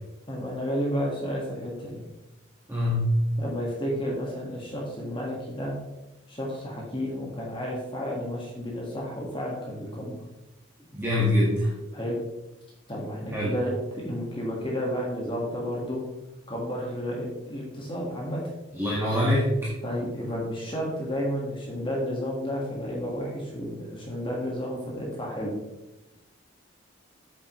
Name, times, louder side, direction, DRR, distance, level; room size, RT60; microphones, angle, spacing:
voice 1, 0.3-2.0 3.4-5.7 6.3-10.2 11.9-12.2 12.9-16.0 16.5-18.4 19.8-25.5, equal, 25° left, -3 dB, 1.6 m, -31 dB
voice 2, 2.7-3.2 10.9-11.7 13.3-13.5 18.8-19.7, left 1 dB, 10° right, -7 dB, 1.6 m, -24 dB
8.6 x 7.2 x 3.1 m, 0.97 s
head